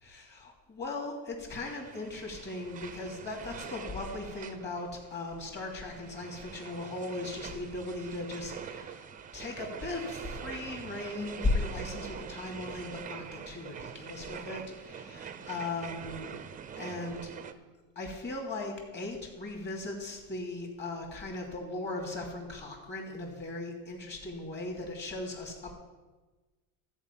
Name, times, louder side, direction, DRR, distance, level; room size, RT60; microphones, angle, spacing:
voice 1, 0.0-9.0 9.3-16.3 16.8-17.3 17.9-25.7, left 2 dB, 25° left, 1 dB, 3.0 m, -37 dB
sound 1, 1.5-17.5, right 7 dB, 20° right, 0.6 m, -44 dB
13.0 x 5.0 x 8.5 m, 1.2 s
cardioid pair, 130°, 40 cm